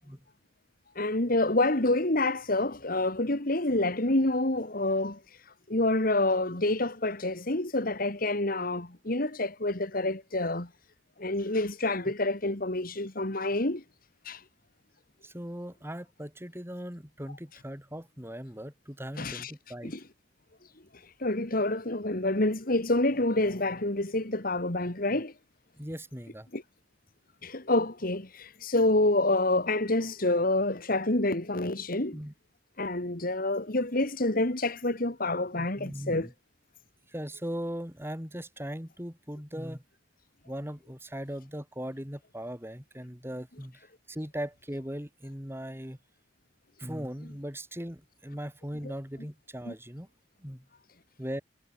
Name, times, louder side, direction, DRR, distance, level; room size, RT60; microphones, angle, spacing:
voice 1, 1.0-5.2 5.7-10.7 11.2-13.8 14.2-14.4 19.2-19.5 19.8-20.0 21.2-25.3 26.5-26.6 27.4-32.2 32.8-36.3 48.8-48.9 49.7-49.8, left 2 dB, 45° left, 2.4 m, -27 dB
voice 2, 15.2-19.9 25.8-26.5 32.1-32.3 35.5-36.3 37.1-39.8 40.4-46.0 46.8-50.1 50.4-50.7 51.2-51.4, equal, 10° right, 7.7 m, -39 dB
head